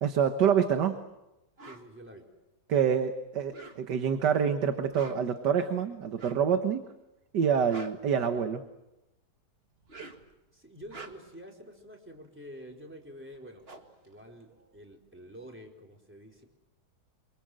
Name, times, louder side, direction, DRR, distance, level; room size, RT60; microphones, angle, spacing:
voice 1, 0.0-1.0 2.7-6.8 7.3-8.6, right 7 dB, 80° right, 8 dB, 1.9 m, -26 dB
voice 2, 1.6-2.2 10.5-13.7 14.0-16.5, equal, 5° right, 1 dB, 4.1 m, -48 dB
sound 1, 1.6-1.9 3.4-4.1 4.8-5.4 6.1-6.5 7.4-8.7 9.7-10.3 10.8-11.4 13.0-13.1 13.3-15.0, right 3 dB, 35° right, 2.1 m, -49 dB
28.5 x 24.0 x 7.7 m, 0.96 s
omnidirectional pair, 1.8 m